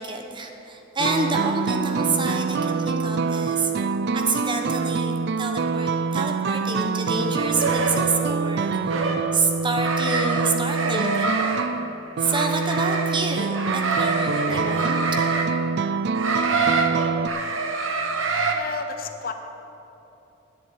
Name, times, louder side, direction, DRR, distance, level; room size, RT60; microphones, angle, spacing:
voice 1, 0.0-3.7 4.1-11.7 12.2-15.6, right 3 dB, 25° right, 4 dB, 1.0 m, -28 dB
sound 1, 1.0-17.3, right 5 dB, 55° right, 0.4 m, -25 dB
sound 2, 7.4-8.1 8.9-9.2 9.8-11.7 12.2-13.2 13.5-15.5 16.1-18.5, right 4 dB, 85° right, 1.1 m, -25 dB
voice 2, 18.5-19.3, left 4 dB, 50° left, 6 dB, 0.8 m, -31 dB
10.5 x 6.8 x 9.2 m, 3.0 s
head